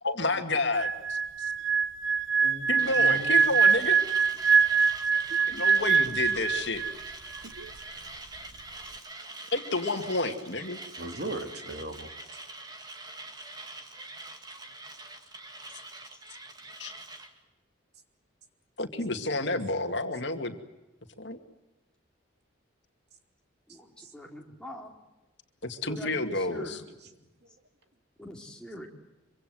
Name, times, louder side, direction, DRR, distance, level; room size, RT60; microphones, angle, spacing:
voice 1, 0.0-1.5 2.7-4.0 5.5-6.8 9.5-10.8 16.8-16.9 18.8-20.6 21.2-21.4 25.6-26.8, left 2 dB, 60° left, 6 dB, 2.3 m, -30 dB
sound 1, 0.7-7.1 7.4-7.7, right 6 dB, 70° right, 1.1 m, -24 dB
voice 2, 2.4-3.5 11.0-12.1 23.7-24.1, right 1 dB, 50° right, 6 dB, 3.0 m, -39 dB
Mechanisms, 2.8-17.3, right 2 dB, 20° right, 2.3 m, -44 dB
voice 3, 23.7-24.9 25.8-26.8 28.2-28.9, left 1 dB, 5° left, 0 dB, 3.4 m, -43 dB
25.5 x 25.0 x 7.8 m, 1.0 s
head